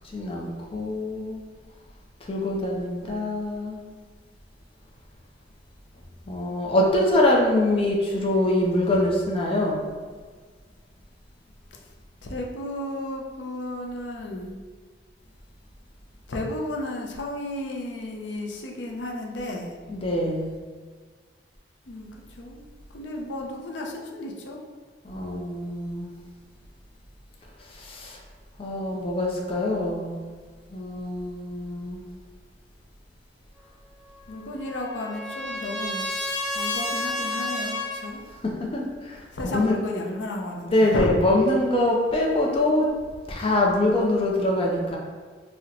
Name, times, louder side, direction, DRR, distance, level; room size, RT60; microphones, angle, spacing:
voice 1, 0.1-1.4 2.3-3.8 6.3-9.8 19.9-20.6 25.0-26.1 27.7-28.2 28.6-30.2 30.7-32.0 38.4-39.7 40.6-42.9 43.3-45.0, left 1 dB, 30° left, -1 dB, 0.4 m, -24 dB
voice 2, 12.2-14.6 16.3-19.8 21.9-22.1 22.4-22.6 22.9-24.6 34.3-36.0 36.5-38.2 39.3-41.2, left 1 dB, 85° left, 0 dB, 0.5 m, -33 dB
Trumpet, 34.1-38.0, left 2 dB, ahead, 1.0 m, -31 dB
2.8 x 2.1 x 3.7 m, 1.5 s
head